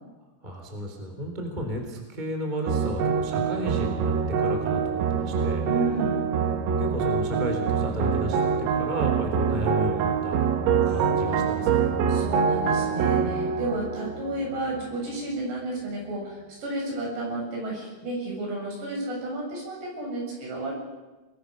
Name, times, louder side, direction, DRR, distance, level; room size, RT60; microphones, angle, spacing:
voice 1, 0.4-5.7 6.7-10.4 10.8-11.8, equal, 10° right, 3 dB, 2.9 m, -33 dB
sound 1, 2.7-15.2, right 6 dB, 90° right, 4.3 m, -25 dB
voice 2, 5.6-6.3 10.8-11.6 12.1-20.7, right 2 dB, 55° right, -1 dB, 9.5 m, -32 dB
29.5 x 20.5 x 6.7 m, 1.1 s
omnidirectional pair, 5.9 m